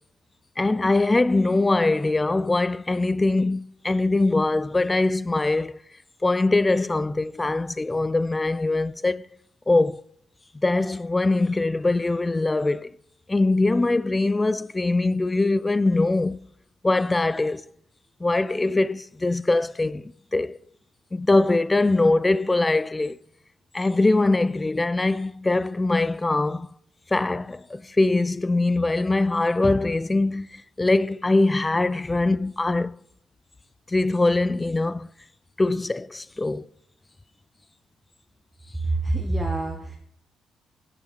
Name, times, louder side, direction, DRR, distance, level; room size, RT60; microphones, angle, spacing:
voice 1, 0.6-5.8 6.2-9.3 9.7-10.0 10.5-12.9 13.3-16.4 16.8-17.6 18.2-20.6 21.1-23.2 23.7-26.7 27.1-33.0 33.9-35.1 35.6-36.7, left 2 dB, 20° left, 0.4 m, -22 dB
voice 2, 38.8-40.0, right 2 dB, 10° right, 1.6 m, -26 dB
16.5 x 6.6 x 4.5 m
cardioid pair, 90°, 0 cm